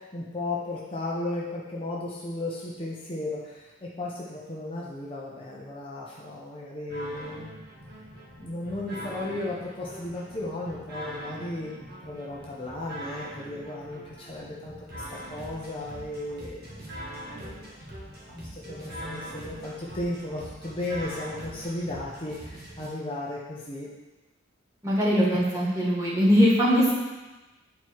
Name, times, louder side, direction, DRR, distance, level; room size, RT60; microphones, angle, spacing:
voice 1, 0.0-7.5 8.4-17.9 18.3-23.9 25.3-25.4, left 2 dB, 25° left, -5 dB, 1.0 m, -35 dB
sound 1, 6.9-22.9, right 1 dB, 50° right, 1.8 m, -42 dB
voice 2, 24.8-26.9, equal, 15° right, -7 dB, 2.1 m, -21 dB
9.0 x 4.5 x 4.7 m, 1.1 s
head